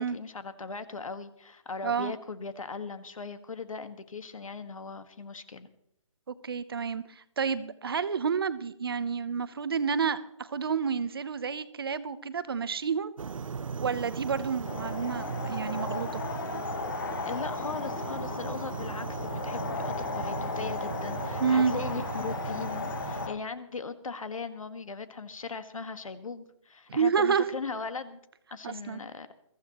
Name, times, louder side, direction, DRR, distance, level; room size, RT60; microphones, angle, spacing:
voice 1, 0.0-5.7 17.2-28.2 28.5-29.3, left 4 dB, 85° left, 10 dB, 1.6 m, -38 dB
voice 2, 6.3-13.1 13.8-16.2 21.4-21.7 26.9-27.5 28.6-29.0, right 6 dB, 45° right, 15 dB, 0.8 m, -29 dB
sound 1, 13.2-23.3, right 5 dB, 80° right, 0.8 m, -37 dB
sound 2, 14.6-23.3, left 5 dB, 40° left, 1.2 m, -36 dB
22.5 x 14.5 x 3.0 m, 0.78 s
hypercardioid pair, 170°, 17 cm